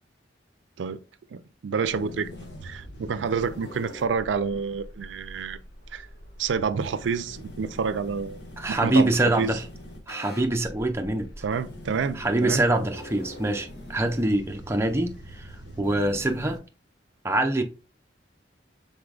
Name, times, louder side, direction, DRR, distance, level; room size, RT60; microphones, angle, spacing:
voice 1, 1.3-5.6 5.9-6.1 6.4-8.4 8.7-9.6 11.4-12.8 15.8-15.9, right 5 dB, 85° right, 0.4 m, -29 dB
sound 1, 1.8-16.6, equal, 65° left, 1.2 m, -43 dB
voice 2, 8.6-9.6 10.1-11.3 12.2-16.6 17.2-17.6, right 1 dB, 15° right, 0.5 m, -25 dB
4.9 x 3.9 x 2.4 m
head